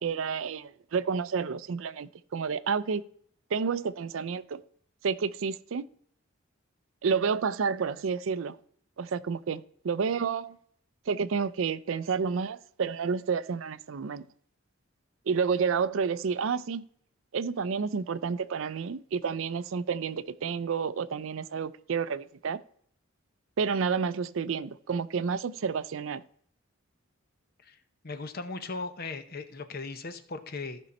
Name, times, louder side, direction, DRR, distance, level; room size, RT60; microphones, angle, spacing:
voice 1, 0.0-3.1 3.5-4.6 5.0-5.8 7.0-8.6 9.0-10.6 11.1-14.3 15.3-16.8 17.3-22.6 23.6-26.2, right 5 dB, 70° right, 0.4 m, -30 dB
voice 2, 28.0-30.8, left 3 dB, 45° left, 0.8 m, -38 dB
14.5 x 5.4 x 4.2 m
head